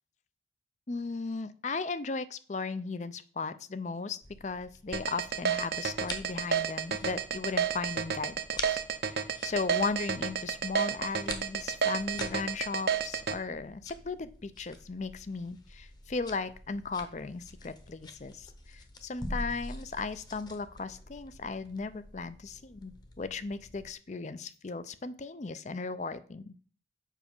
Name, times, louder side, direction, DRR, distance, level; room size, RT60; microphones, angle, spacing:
voice 1, 0.9-8.4 8.7-26.6, left 4 dB, 40° left, 14 dB, 0.5 m, -36 dB
sound 1, 4.2-23.9, left 1 dB, 20° left, 0.9 m, -46 dB
sound 2, 4.9-13.3, right 7 dB, 55° right, 0.7 m, -30 dB
7.4 x 5.9 x 5.3 m, 0.42 s
head